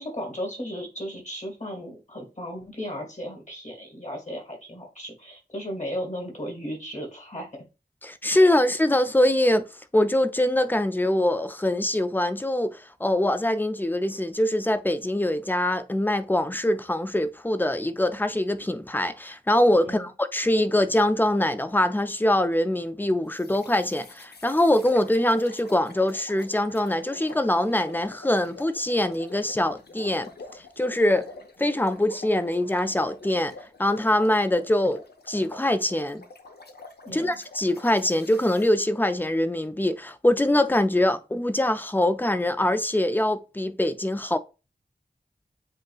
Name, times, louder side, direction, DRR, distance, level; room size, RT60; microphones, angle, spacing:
voice 1, 0.0-7.5 8.2-8.5 19.9-20.1 37.0-37.4, equal, 50° left, 2.0 m, -35 dB
voice 2, 8.0-9.7 9.9-30.3 30.8-31.3 31.6-33.5 33.8-36.2 37.1-44.4, left 1 dB, 10° left, 0.4 m, -23 dB
sound 1, 23.3-38.7, left 3 dB, 75° left, 0.7 m, -46 dB
7.6 x 2.7 x 2.4 m
wide cardioid pair, 70°, 17 cm